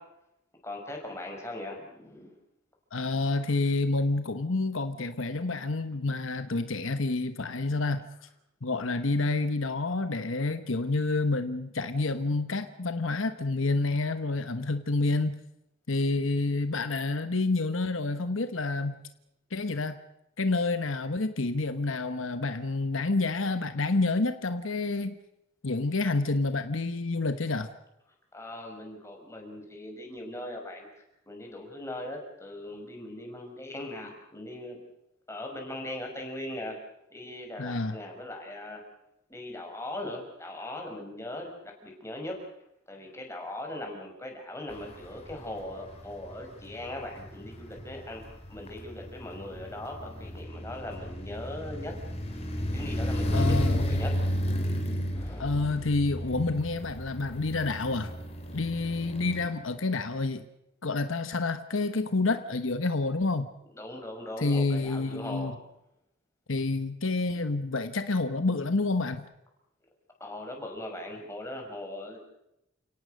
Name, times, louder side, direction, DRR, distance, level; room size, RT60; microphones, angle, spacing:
voice 1, 0.6-2.3 28.3-30.9 31.3-34.8 35.3-36.7 37.1-38.8 39.3-42.4 42.9-48.2 48.5-51.9 52.3-52.4 52.7-54.1 55.1-55.8 63.7-65.6 70.2-72.3, left 1 dB, 15° left, 1 dB, 5.9 m, -39 dB
voice 2, 2.9-8.0 8.6-15.3 15.9-19.0 19.5-20.0 20.4-25.1 25.6-27.7 37.6-38.0 53.3-53.8 55.4-58.1 58.5-60.5 60.8-63.5 64.4-65.5 66.5-69.2, left 3 dB, 70° left, 9 dB, 1.2 m, -28 dB
sound 1, 44.7-59.5, equal, 30° left, 3.7 m, -33 dB
29.5 x 18.0 x 6.5 m, 0.85 s
head